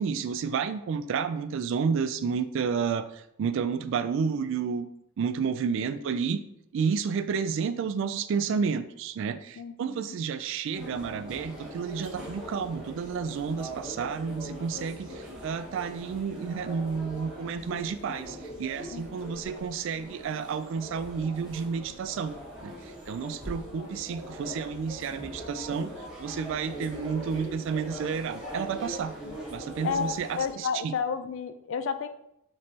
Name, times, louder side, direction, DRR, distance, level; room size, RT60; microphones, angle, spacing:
voice 1, 0.0-4.9 5.2-6.4 6.7-22.3 22.6-25.9 26.2-29.1 29.5-30.9, right 6 dB, 65° right, 12 dB, 0.3 m, -31 dB
voice 2, 9.5-10.2 18.9-19.3 23.8-23.9 25.8-25.9 29.2-29.4 29.8-32.1, left 6 dB, 65° left, 10 dB, 0.4 m, -32 dB
sound 1, 10.7-30.5, equal, 5° right, 1.0 m, -41 dB
5.2 x 3.1 x 2.8 m, 0.77 s
head